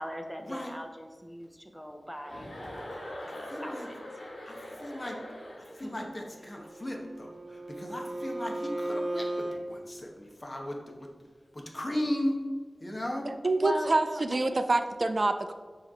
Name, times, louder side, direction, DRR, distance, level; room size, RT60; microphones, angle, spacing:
voice 1, 0.0-4.0 5.6-5.9 13.6-14.7, equal, ahead, 5 dB, 0.7 m, -40 dB
Chuckle chortle, 2.2-6.0, left 1 dB, 85° left, 1.4 m, -42 dB
voice 2, 3.5-3.9 4.5-5.2 5.6-11.1 11.5-12.4 12.8-13.3, left 1 dB, 35° left, 1 dB, 1.1 m, -36 dB
Bowed string instrument, 6.4-9.6, right 1 dB, 40° right, 1.3 m, -36 dB
voice 3, 13.3-15.5, right 2 dB, 55° right, 8 dB, 0.3 m, -26 dB
6.2 x 3.3 x 5.0 m, 1.5 s
wide cardioid pair, 50°, 0 cm